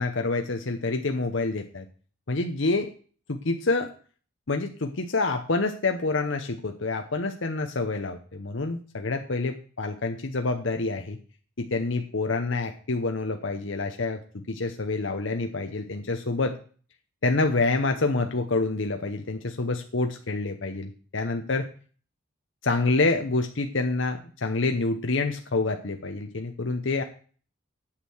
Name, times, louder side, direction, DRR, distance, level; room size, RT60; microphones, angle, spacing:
voice 1, 0.0-1.9 2.3-2.9 3.3-3.9 4.5-11.2 11.6-16.6 17.2-21.7 22.6-27.0, left 3 dB, 70° left, 5 dB, 0.9 m, -27 dB
8.8 x 6.6 x 7.9 m, 0.41 s
head